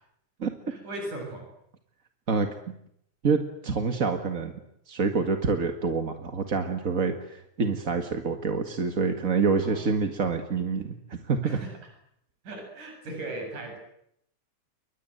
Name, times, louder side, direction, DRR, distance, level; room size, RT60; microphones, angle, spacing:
voice 1, 0.7-1.5 9.6-9.8 11.4-11.7 12.4-13.8, right 1 dB, 80° right, 2 dB, 9.0 m, -37 dB
voice 2, 3.2-4.5 4.9-11.6, right 4 dB, 30° right, 6 dB, 1.7 m, -27 dB
29.5 x 23.5 x 8.0 m, 0.74 s
omnidirectional pair, 3.5 m